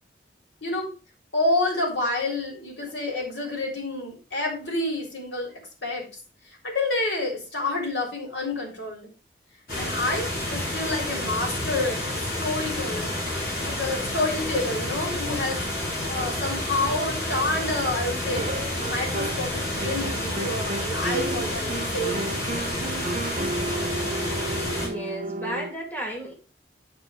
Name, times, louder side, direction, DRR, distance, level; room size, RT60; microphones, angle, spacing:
voice 1, 1.3-6.1 6.6-9.1 9.8-13.1 13.6-15.7 16.1-18.5 18.8-22.2, left 2 dB, 85° left, 0 dB, 3.5 m, -28 dB
sound 1, 9.7-24.9, left 1 dB, 55° left, 4.0 m, -29 dB
sound 2, 18.4-19.5 19.8-25.7, right 2 dB, 40° right, 0.5 m, -33 dB
voice 2, 24.7-26.3, equal, 10° left, -2 dB, 2.5 m, -34 dB
10.0 x 4.7 x 4.9 m, 0.34 s
head